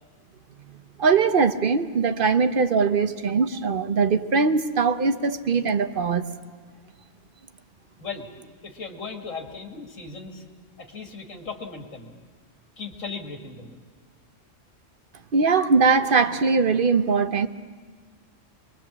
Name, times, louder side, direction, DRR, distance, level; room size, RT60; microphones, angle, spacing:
voice 1, 1.0-6.3 15.3-17.5, right 4 dB, 50° right, 0.9 m, -21 dB
voice 2, 8.6-10.4 10.8-12.1 12.8-13.8, left 4 dB, 90° left, 2.7 m, -37 dB
25.0 x 22.5 x 7.4 m
omnidirectional pair, 1.3 m